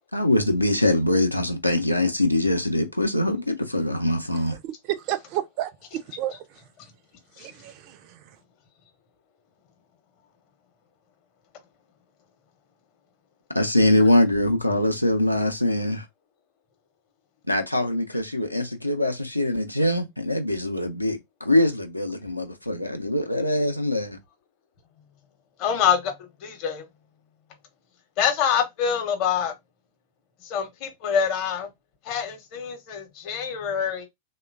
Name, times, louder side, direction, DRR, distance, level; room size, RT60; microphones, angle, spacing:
voice 1, 0.1-4.6 13.5-16.1 17.5-24.2, left 1 dB, 90° left, 0.4 m, -23 dB
voice 2, 4.6-6.4 7.4-8.4, right 13 dB, 45° right, 0.3 m, -31 dB
voice 3, 25.6-26.8 28.2-29.5 30.4-31.7 32.0-34.1, left 8 dB, 40° left, 0.7 m, -25 dB
3.0 x 2.1 x 2.3 m
figure-of-eight pair, 90°, 0 cm